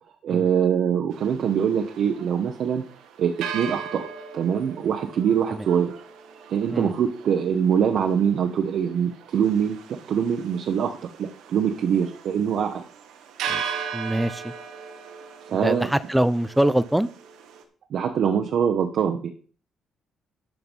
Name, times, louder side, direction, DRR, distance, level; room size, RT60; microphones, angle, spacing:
voice 1, 0.2-2.8 3.2-5.9 6.5-9.8 10.1-12.8 15.5-15.9 17.9-19.3, right 8 dB, 65° right, 2 dB, 1.1 m, -23 dB
sound 1, 1.1-17.6, right 7 dB, 90° right, 1.5 m, -38 dB
voice 2, 13.9-14.5 15.6-17.1, right 1 dB, 5° right, 15 dB, 0.6 m, -23 dB
12.5 x 4.7 x 5.4 m, 0.41 s
cardioid pair, 90°, 0 cm